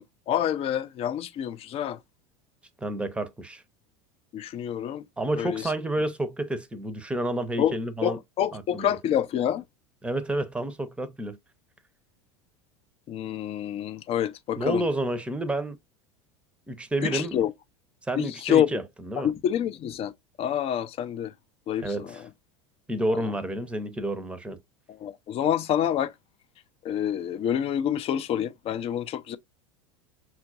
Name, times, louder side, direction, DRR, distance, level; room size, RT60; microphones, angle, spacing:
voice 1, 0.0-2.0 4.3-5.0 5.4-5.6 7.6-7.7 8.0-9.6 13.1-14.8 17.0-17.5 18.2-18.7 19.2-20.1 20.4-21.3 21.7-21.9 25.0-26.1 26.8-29.4, left 10 dB, 40° left, 0.5 m, -27 dB
voice 2, 2.8-3.6 5.2-8.2 8.5-9.0 10.0-11.4 14.6-15.8 16.7-17.5 18.1-19.3 21.8-22.2 22.9-24.6, right 1 dB, 5° right, 0.7 m, -30 dB
5.8 x 2.4 x 2.4 m
hypercardioid pair, 85°, 16 cm